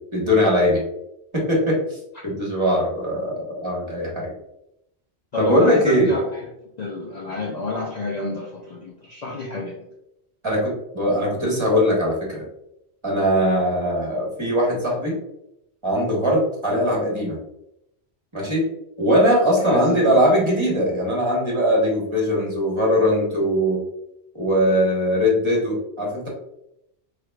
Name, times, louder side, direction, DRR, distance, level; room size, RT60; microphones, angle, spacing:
voice 1, 0.1-0.8 1.3-4.3 5.4-6.1 10.4-12.4 13.0-15.2 15.8-17.4 18.3-18.7 19.0-23.8 24.3-26.3, equal, 25° right, -4 dB, 1.3 m, -20 dB
voice 2, 5.3-6.5 6.8-9.8 19.6-20.2, left 3 dB, 45° left, -2 dB, 0.6 m, -29 dB
4.9 x 3.3 x 2.3 m, 0.81 s
omnidirectional pair, 1.1 m